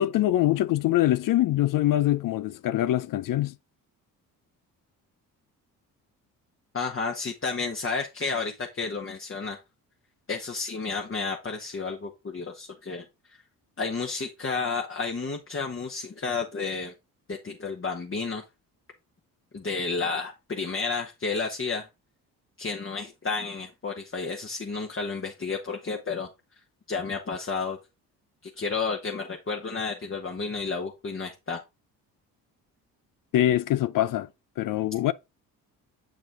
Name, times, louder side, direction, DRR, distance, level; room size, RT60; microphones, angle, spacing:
voice 1, 0.0-3.6 33.3-34.3 34.6-35.1, left 13 dB, 45° left, 0.5 m, -24 dB
voice 2, 6.7-9.6 10.3-13.0 13.8-16.9 17.3-18.4 19.5-21.9 22.6-26.3 26.9-27.8 28.6-31.6, left 4 dB, 25° left, 1.2 m, -31 dB
7.5 x 5.1 x 3.6 m
hypercardioid pair, 50°, 46 cm